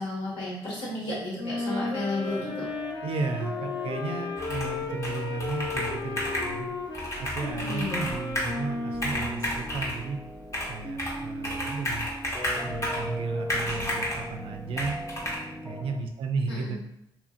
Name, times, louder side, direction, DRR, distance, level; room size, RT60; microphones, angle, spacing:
voice 1, 0.0-2.7 7.5-8.1 16.5-16.8, left 2 dB, 75° left, -8 dB, 1.5 m, -33 dB
Wind instrument woodwind instrument, 1.4-9.7, left 3 dB, 60° left, 0.5 m, -35 dB
sound 1, 2.3-16.0, equal, ahead, 0.3 m, -40 dB
voice 2, 3.0-6.7 7.2-10.2 10.7-12.1 12.6-15.0 15.6-16.8, right 4 dB, 80° right, 5 dB, 0.4 m, -34 dB
Computer keyboard, 4.4-4.8 5.0-6.5 6.9-8.6 8.9-10.0 10.5-11.2 11.4-13.1 13.5-14.2 14.8-15.4, left 1 dB, 35° left, 0.9 m, -32 dB
2.8 x 2.5 x 2.5 m, 0.78 s
cardioid pair, 70°, 9 cm